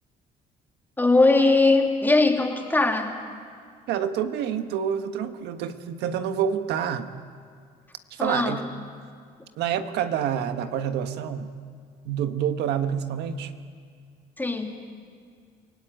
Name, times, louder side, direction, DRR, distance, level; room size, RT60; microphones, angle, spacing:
voice 1, 1.0-3.1 8.2-8.7 14.4-14.7, left 3 dB, 10° left, 2 dB, 2.9 m, -20 dB
voice 2, 3.9-7.1 8.1-8.6 9.6-11.5 12.0-13.5, right 8 dB, 80° right, 8 dB, 1.5 m, -27 dB
29.0 x 19.0 x 9.1 m, 2.1 s
cardioid pair, 110°, 17 cm